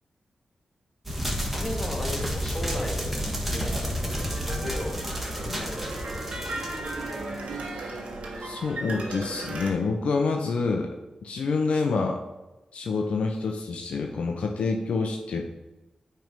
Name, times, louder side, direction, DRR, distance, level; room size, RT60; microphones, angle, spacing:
sound 1, 1.1-7.8, equal, 5° right, 1.5 m, -31 dB
voice 1, 1.5-3.2 3.5-7.2, left 1 dB, 25° left, -1 dB, 2.0 m, -37 dB
sound 2, 3.1-9.7, right 2 dB, 80° right, 1.3 m, -36 dB
voice 2, 7.5-8.0 8.4-10.9 11.2-12.2 12.7-15.4, left 4 dB, 80° left, 2 dB, 0.6 m, -27 dB
9.0 x 3.4 x 5.2 m, 1.1 s
cardioid pair, 70°, 2 cm